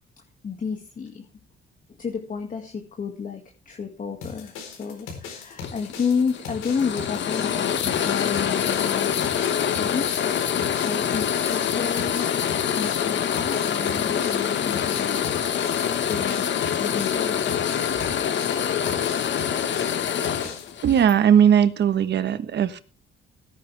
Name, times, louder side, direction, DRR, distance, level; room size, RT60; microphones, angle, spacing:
voice 1, 0.4-1.2 1.9-9.2 9.6-10.1 10.4-12.4 12.8-15.2 15.7-17.6, left 6 dB, 40° left, 3 dB, 2.2 m, -31 dB
sound 1, 4.2-20.7, left 5 dB, 85° left, 4.3 m, -39 dB
sound 2, 5.6-21.1, left 8 dB, 65° left, 1.5 m, -25 dB
voice 2, 20.8-22.8, right 8 dB, 60° right, 12 dB, 1.3 m, -18 dB
17.0 x 10.5 x 3.4 m, 0.36 s
cardioid pair, 90°, 20 cm